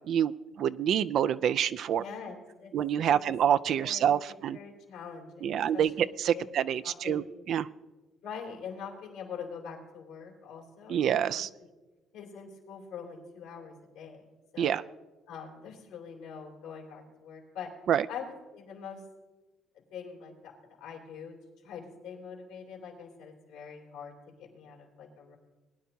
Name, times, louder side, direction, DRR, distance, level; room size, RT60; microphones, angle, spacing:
voice 1, 0.6-2.0 2.7-4.6 5.4-7.2 7.5-7.7 10.9-11.5 14.6-14.8 17.9-18.0, right 9 dB, 65° right, 14 dB, 0.4 m, -27 dB
voice 2, 2.0-2.7 3.1-3.3 3.7-6.1 6.3-6.4 6.8-7.3 8.2-11.4 12.1-14.2 14.5-14.8 15.3-17.7 18.1-19.0 19.7-21.4 21.6-25.4, left 6 dB, 90° left, -1 dB, 3.2 m, -44 dB
20.0 x 10.0 x 2.8 m, 1.2 s
supercardioid pair, 85°, 0 cm